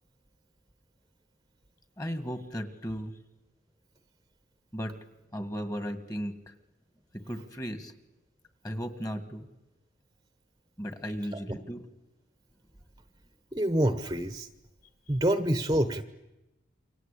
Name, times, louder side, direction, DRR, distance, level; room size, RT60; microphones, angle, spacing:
voice 1, 2.0-3.1 4.7-4.9 5.3-6.5 7.3-7.9 8.6-9.5 10.8-11.8, equal, 20° left, 9 dB, 1.9 m, -35 dB
voice 2, 13.5-14.5 15.1-16.0, right 1 dB, 20° right, 10 dB, 1.0 m, -26 dB
29.0 x 24.5 x 8.5 m, 0.99 s
head